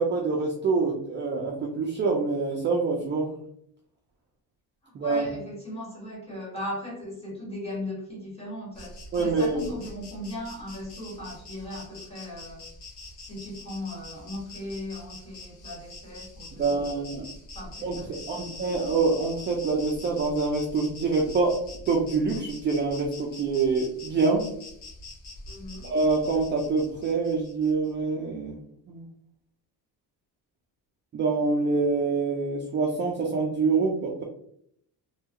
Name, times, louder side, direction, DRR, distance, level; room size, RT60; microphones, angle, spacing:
voice 1, 0.0-3.3 4.9-5.3 9.1-9.6 16.6-17.3 17.8-18.0 18.3-21.6 21.9-24.5 25.8-28.6 28.9-29.1 31.1-34.2, right 4 dB, 30° right, 0 dB, 0.4 m, -26 dB
voice 2, 4.8-12.6 13.2-17.0 17.5-18.7 25.5-25.9, left 1 dB, 15° left, -4 dB, 1.3 m, -38 dB
Insect, 8.7-27.9, left 2 dB, 75° left, 1.3 m, -44 dB
3.3 x 2.3 x 2.8 m, 0.69 s
cardioid pair, 160°, 38 cm